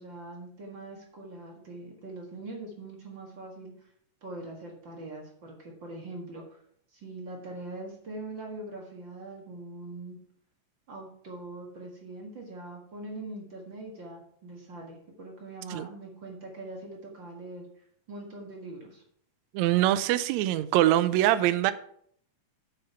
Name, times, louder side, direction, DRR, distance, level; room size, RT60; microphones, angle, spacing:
voice 1, 0.0-3.9 4.2-6.6 6.9-10.2 10.9-17.7 18.1-19.0, right 2 dB, 45° right, -1 dB, 1.9 m, -42 dB
voice 2, 19.5-21.7, right 14 dB, 85° right, 12 dB, 1.6 m, -23 dB
7.7 x 6.4 x 5.7 m, 0.64 s
omnidirectional pair, 3.9 m